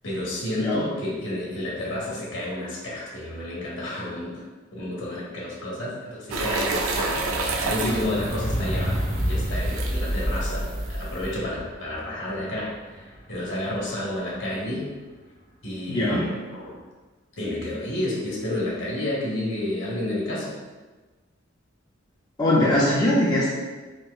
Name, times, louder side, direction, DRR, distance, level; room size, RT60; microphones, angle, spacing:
voice 1, 0.0-4.4 4.7-9.0 9.3-15.0 15.6-16.8 17.4-20.6, left 1 dB, 65° left, -5 dB, 1.0 m, -30 dB
sound 1, 6.3-11.3, right 3 dB, 85° right, 0.4 m, -30 dB
sound 2, 7.3-13.8 14.6-14.7, equal, 90° left, 0.9 m, -29 dB
voice 2, 15.9-16.2 22.4-23.5, left 1 dB, 20° left, -6 dB, 0.4 m, -21 dB
4.2 x 2.0 x 2.3 m, 1.3 s
head